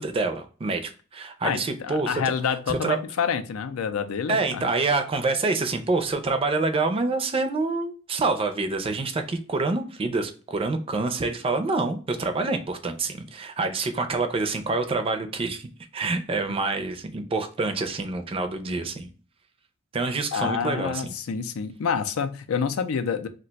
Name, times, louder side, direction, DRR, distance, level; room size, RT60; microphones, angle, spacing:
voice 1, 0.0-2.1 2.7-3.0 4.3-15.7 15.9-19.1 19.9-21.1, right 3 dB, 25° right, 7 dB, 0.4 m, -27 dB
voice 2, 1.4-4.7 20.3-23.3, left 6 dB, 90° left, 9 dB, 0.4 m, -28 dB
2.4 x 2.2 x 3.8 m, 0.38 s
head